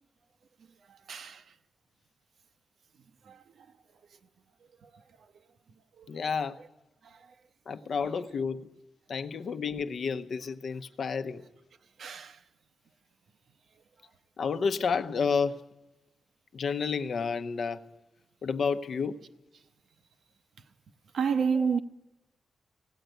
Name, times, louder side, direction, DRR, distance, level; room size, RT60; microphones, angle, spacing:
voice 1, 0.9-1.4 3.3-3.4 4.8-4.9 6.0-6.2 7.1-7.2 12.0-12.4 21.1-21.8, right 6 dB, 70° right, 0.9 m, -30 dB
voice 2, 6.1-6.6 7.7-8.7 9.1-11.4 14.4-15.6 16.5-17.8 18.4-19.2 21.6-21.7, left 5 dB, 55° left, 0.8 m, -30 dB
17.5 x 17.5 x 9.1 m
wide cardioid pair, 170°, 0 cm